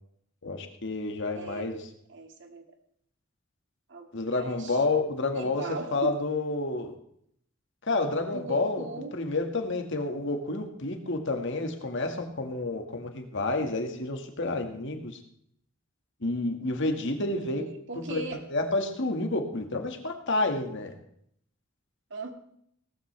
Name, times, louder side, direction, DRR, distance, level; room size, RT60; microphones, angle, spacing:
voice 1, 0.4-1.8 4.1-5.6 5.9-6.9 7.9-8.9 9.1-15.2 16.2-17.7 18.1-18.2 18.5-20.9, left 2 dB, 60° left, 4 dB, 1.9 m, -29 dB
voice 2, 1.3-1.7 2.1-2.6 3.9-4.8 5.3-6.1 8.3-9.2 9.7-9.8 17.5-18.4 22.1-22.3, right 2 dB, 60° right, 4 dB, 2.1 m, -39 dB
18.0 x 14.0 x 3.4 m, 0.69 s
head